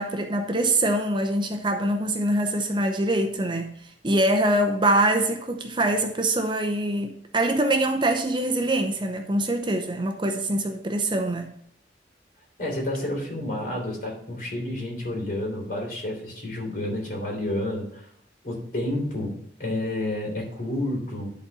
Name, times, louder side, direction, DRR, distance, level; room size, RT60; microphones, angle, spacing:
voice 1, 0.0-3.7 4.0-11.5, right 1 dB, 25° right, 0.7 m, -24 dB
voice 2, 12.6-18.1 18.4-21.3, left 1 dB, 50° left, 3.5 m, -30 dB
11.0 x 4.2 x 5.5 m
head